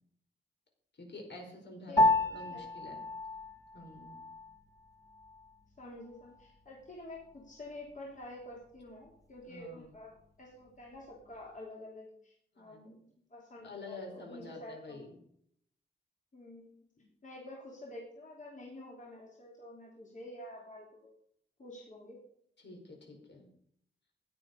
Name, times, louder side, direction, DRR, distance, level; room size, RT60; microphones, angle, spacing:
voice 1, 0.9-3.0 3.7-4.2 9.5-9.9 12.5-12.9 13.6-15.2 22.6-23.5, left 2 dB, 70° left, 1 dB, 4.9 m, -48 dB
Piano, 2.0-11.6, left 2 dB, 20° left, 1.3 m, -35 dB
voice 2, 5.8-15.0 16.3-16.8 17.2-21.1 21.6-22.2, left 1 dB, 40° left, -3 dB, 3.4 m, -49 dB
16.0 x 10.0 x 5.4 m, 0.67 s
wide cardioid pair, 175°, 19 cm